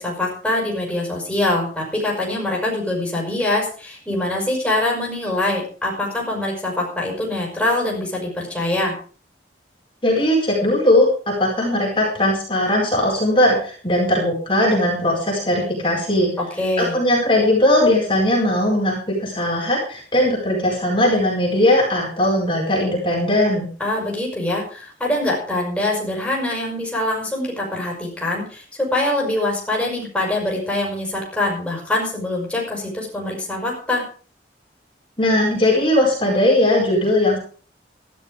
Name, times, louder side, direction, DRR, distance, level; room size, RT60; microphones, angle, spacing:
voice 1, 0.0-8.9 16.6-17.0 23.8-34.0, left 1 dB, 5° left, -2 dB, 5.9 m, -24 dB
voice 2, 10.0-16.3 16.8-23.7 35.2-37.4, left 1 dB, 30° left, -4 dB, 4.7 m, -19 dB
14.0 x 12.0 x 5.0 m, 0.42 s
head